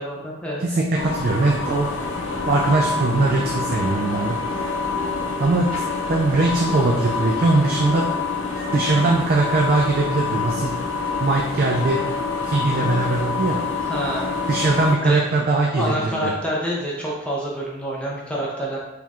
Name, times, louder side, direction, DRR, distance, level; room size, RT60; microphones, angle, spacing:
voice 1, 0.0-0.6 13.8-14.3 15.0-15.2 15.7-18.8, equal, 5° left, -4 dB, 0.5 m, -27 dB
voice 2, 0.6-1.9 2.4-4.4 5.4-5.8 6.1-8.0 8.7-10.7 11.2-12.0 12.4-13.6 14.5-16.3, right 2 dB, 50° right, 0 dB, 0.4 m, -20 dB
sound 1, 0.9-15.0, left 4 dB, 85° left, 0.6 m, -26 dB
4.3 x 3.5 x 2.4 m, 0.96 s
head